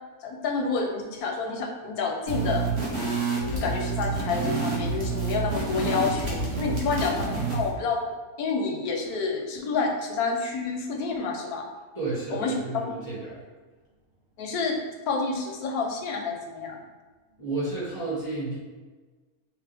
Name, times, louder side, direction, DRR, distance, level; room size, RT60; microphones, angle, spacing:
voice 1, 0.2-2.7 3.5-8.1 8.4-11.6 12.3-12.5 14.4-14.8 15.1-16.8, left 4 dB, 85° left, 2 dB, 1.2 m, -29 dB
sound 1, 2.3-7.7, right 4 dB, 50° right, 1.1 m, -28 dB
voice 2, 11.9-13.4 17.4-18.6, right 3 dB, 20° right, -8 dB, 1.0 m, -31 dB
5.0 x 2.1 x 3.4 m, 1.3 s
omnidirectional pair, 1.6 m